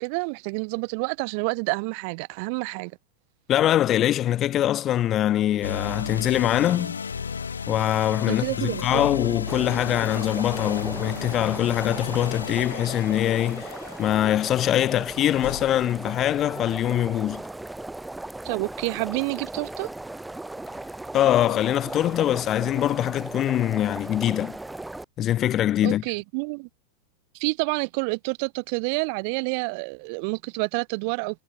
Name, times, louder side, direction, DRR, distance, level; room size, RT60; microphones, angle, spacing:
voice 1, 0.0-3.0 8.3-9.1 18.4-19.9 25.8-26.7 27.3-31.4, right 35 dB, 45° right, 0.5 m, -28 dB
voice 2, 3.5-7.0 7.7-17.4 21.1-24.6 25.2-26.0, left 12 dB, 30° left, 0.3 m, -23 dB
sound 1, 5.6-16.0, left 6 dB, 70° left, 1.8 m, -34 dB
sound 2, 9.5-25.0, right 2 dB, 5° right, 2.3 m, -37 dB
sound 3, 15.0-17.3 17.8-17.9 20.5-22.7, left 14 dB, 55° left, 6.9 m, -49 dB
figure-of-eight pair, 90°, 0 cm